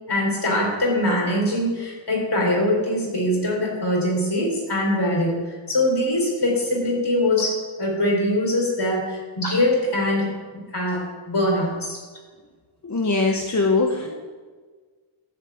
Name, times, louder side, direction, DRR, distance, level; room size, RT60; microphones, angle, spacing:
voice 1, 0.1-7.5 7.8-12.0 14.0-14.1, left 1 dB, 55° left, -1 dB, 4.2 m, -23 dB
voice 2, 12.8-14.1, left 3 dB, 35° left, 2 dB, 1.0 m, -21 dB
12.5 x 5.2 x 8.5 m, 1.4 s
wide cardioid pair, 85°, 49 cm